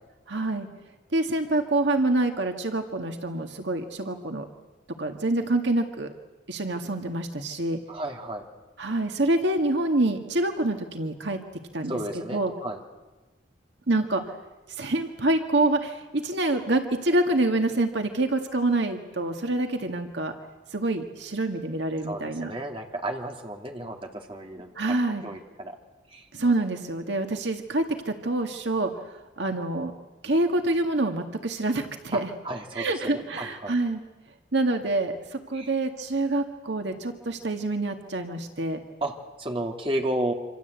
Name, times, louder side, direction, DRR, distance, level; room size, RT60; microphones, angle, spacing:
voice 1, 0.3-0.7 1.1-4.5 5.0-6.1 6.5-7.8 8.8-11.4 11.7-11.9 12.3-12.5 13.9-14.2 14.7-20.3 20.7-22.5 24.8-25.2 26.3-28.9 29.4-29.9 30.2-32.3 32.7-34.0 34.5-38.8, right 2 dB, 65° right, 5 dB, 1.9 m, -26 dB
voice 2, 7.9-8.4 11.9-12.8 22.1-25.0 25.2-25.8 26.1-26.3 32.1-33.7 35.5-35.7 39.0-39.1 39.4-40.3, right 1 dB, 30° right, 2 dB, 2.8 m, -32 dB
27.0 x 26.5 x 8.2 m, 1.1 s
head